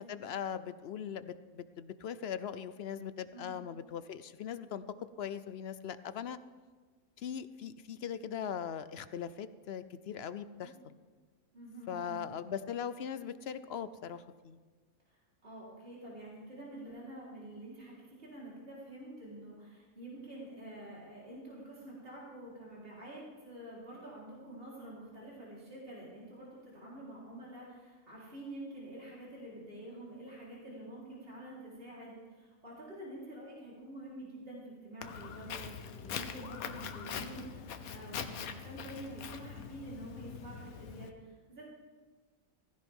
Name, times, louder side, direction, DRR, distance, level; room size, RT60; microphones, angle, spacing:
voice 1, 0.0-4.8 5.2-6.4 7.2-10.9 11.9-14.6, left 8 dB, 60° left, 13 dB, 0.7 m, -40 dB
voice 2, 11.5-12.3 15.1-41.6, right 1 dB, 40° right, -6 dB, 4.3 m, -48 dB
Walk footsteps, 35.0-41.1, left 7 dB, 85° left, 1.3 m, -43 dB
16.5 x 15.5 x 3.6 m, 1.4 s
omnidirectional pair, 1.5 m